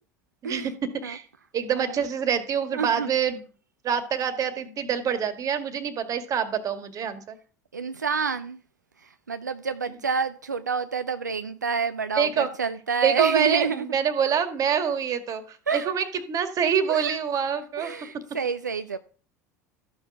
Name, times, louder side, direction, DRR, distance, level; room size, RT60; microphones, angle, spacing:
voice 1, 0.4-1.3 1.5-3.4 3.8-7.4 12.2-12.5 13.0-18.0, right 7 dB, 40° right, 1.9 m, -26 dB
voice 2, 1.7-2.0 2.7-3.1 7.7-8.6 9.0-14.0 14.2-14.4 15.7-15.9 16.9-17.2 17.8-19.0, right 5 dB, 90° right, 0.5 m, -29 dB
13.0 x 6.4 x 5.7 m
figure-of-eight pair, 75°, 9 cm